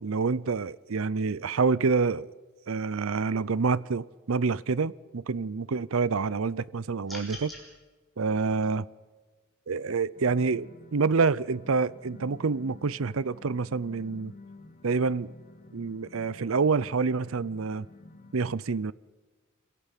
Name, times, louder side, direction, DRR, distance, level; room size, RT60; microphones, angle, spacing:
voice 1, 0.0-2.3 2.7-7.5 8.2-8.9 9.7-14.3 14.8-15.3 15.7-17.9 18.3-18.9, right 4 dB, 70° right, 0.6 m, -27 dB
sound 1, 7.1-7.6, left 1 dB, ahead, 5.8 m, -41 dB
sound 2, 10.1-18.4, left 2 dB, 40° left, 2.0 m, -51 dB
26.0 x 17.0 x 8.3 m
head